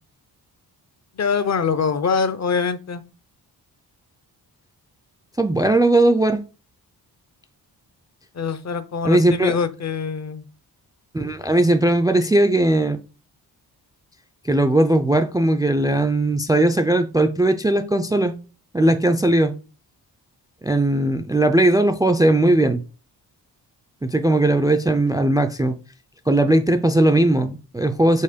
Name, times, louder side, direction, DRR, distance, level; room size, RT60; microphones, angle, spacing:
voice 1, 1.2-3.0 8.3-10.5, left 5 dB, 40° left, 0.6 m, -23 dB
voice 2, 5.4-6.4 9.0-9.6 11.1-13.0 14.4-18.4 18.7-19.5 20.6-22.8 24.0-25.7 26.3-28.2, right 1 dB, 10° right, 0.3 m, -18 dB
5.5 x 4.2 x 5.0 m
wide cardioid pair, 155°, 40 cm